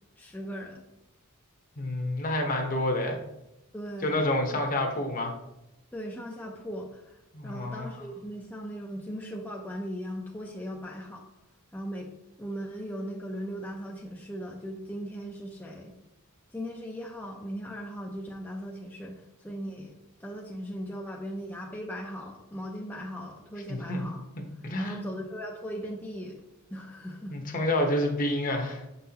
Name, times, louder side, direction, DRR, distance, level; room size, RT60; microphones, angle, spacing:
voice 1, 0.2-0.8 3.7-4.2 5.9-11.3 11.7-12.1 12.4-15.9 16.5-19.9 20.2-24.2 24.8-26.4 26.7-27.4, equal, 10° left, -2 dB, 0.5 m, -38 dB
voice 2, 1.8-3.2 4.0-5.3 7.3-7.9 23.7-24.0 24.6-25.1 27.3-28.8, left 1 dB, 40° left, 2 dB, 1.0 m, -28 dB
7.0 x 5.5 x 2.9 m, 0.90 s
head